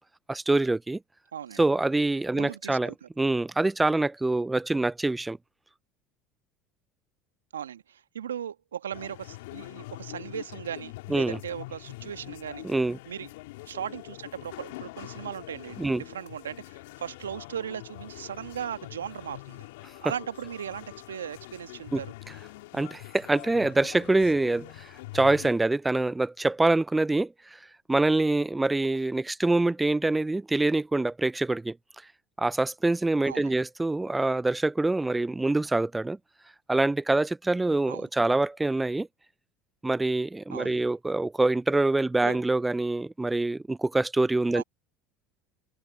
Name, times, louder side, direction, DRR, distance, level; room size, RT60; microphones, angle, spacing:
voice 1, 0.3-1.0 1.6-5.4 11.1-11.4 12.6-13.0 15.8-16.0 21.9-22.0 22.7-27.6 27.9-31.7 32.4-36.2 36.7-39.1 39.8-44.6, right 2 dB, 10° right, 0.3 m, -25 dB
voice 2, 2.3-3.1 7.5-12.6 13.1-13.3 13.6-19.7 20.0-22.1 33.3-33.5 37.9-38.1 40.5-40.8 42.2-42.4 44.5-44.6, right 9 dB, 85° right, 1.3 m, -38 dB
sound 1, 8.9-25.5, left 20 dB, 70° left, 3.8 m, -44 dB
open air
hypercardioid pair, 70°, 0 cm